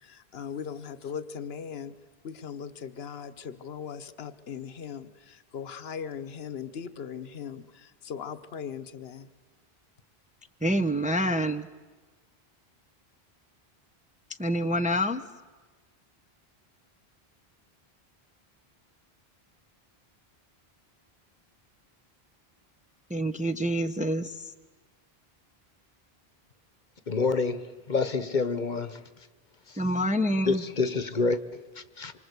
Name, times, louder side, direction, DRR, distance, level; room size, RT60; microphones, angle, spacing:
voice 1, 0.0-1.9 2.2-9.3, left 7 dB, 75° left, 1.3 m, -39 dB
voice 2, 10.6-11.7 14.4-15.2 23.1-24.4 29.8-30.6, equal, 10° right, 0.8 m, -27 dB
voice 3, 27.1-29.0 29.7-29.8 30.4-32.1, left 4 dB, 50° left, 1.2 m, -28 dB
27.0 x 24.5 x 8.2 m
omnidirectional pair, 1.1 m